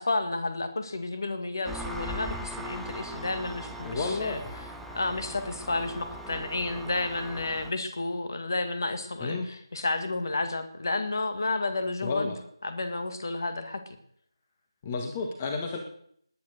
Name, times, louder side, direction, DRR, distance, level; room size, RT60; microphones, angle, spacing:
voice 1, 0.0-4.4 4.9-12.3 12.6-13.8, left 2 dB, 45° left, 8 dB, 2.0 m, -31 dB
Engine, 1.7-7.7, right 1 dB, ahead, 0.5 m, -40 dB
voice 2, 3.8-4.5 9.2-9.5 12.0-12.4 14.8-15.8, left 3 dB, 20° left, 3 dB, 1.6 m, -31 dB
18.5 x 9.5 x 6.5 m, 0.68 s
figure-of-eight pair, 160°, 3 cm